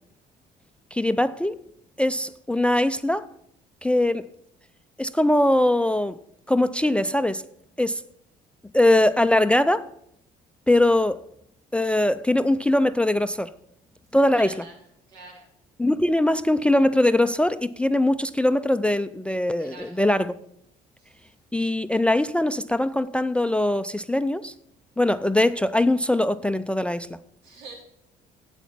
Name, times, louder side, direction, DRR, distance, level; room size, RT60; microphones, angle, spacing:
voice 1, 0.9-1.6 2.0-3.3 3.8-4.3 5.0-6.2 6.5-7.4 7.8-8.0 8.7-9.9 10.7-11.2 11.7-13.5 14.1-14.6 15.8-20.4 21.5-24.5 25.0-27.2, left 1 dB, 5° left, 0.3 m, -21 dB
voice 2, 14.1-14.7 15.1-15.5 19.6-20.0 21.0-21.3 27.4-27.9, right 3 dB, 80° right, 3.5 m, -45 dB
8.2 x 8.1 x 6.1 m
cardioid pair, 110°, 17 cm